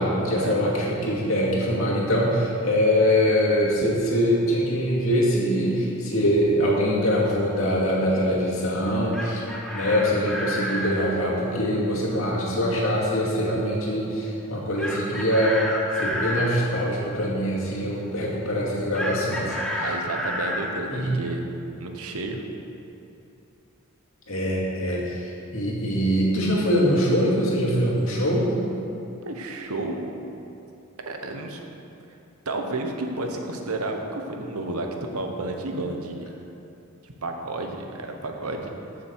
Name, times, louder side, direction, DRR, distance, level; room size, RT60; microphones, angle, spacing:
voice 1, 0.0-9.4 9.7-19.8 20.9-21.2 24.3-28.6, equal, 65° left, -5 dB, 2.4 m, -23 dB
Chicken rooster, 8.9-11.0 14.8-16.5 18.9-20.7, equal, 5° left, 1.0 m, -30 dB
voice 2, 19.7-21.4 21.8-22.4 29.2-30.0 31.1-31.6 32.4-36.3 37.0-38.7, right 2 dB, 85° right, 3 dB, 1.1 m, -31 dB
14.0 x 6.7 x 4.7 m, 2.8 s
head